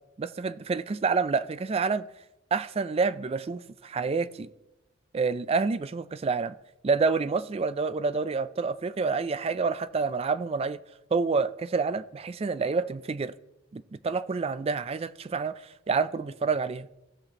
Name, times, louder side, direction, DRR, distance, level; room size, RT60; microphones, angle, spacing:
voice 1, 0.2-2.1 2.5-4.5 5.1-6.6 6.8-10.8 11.1-13.3 13.7-16.9, right 4 dB, 30° right, 0.3 m, -28 dB
17.0 x 6.0 x 2.9 m
head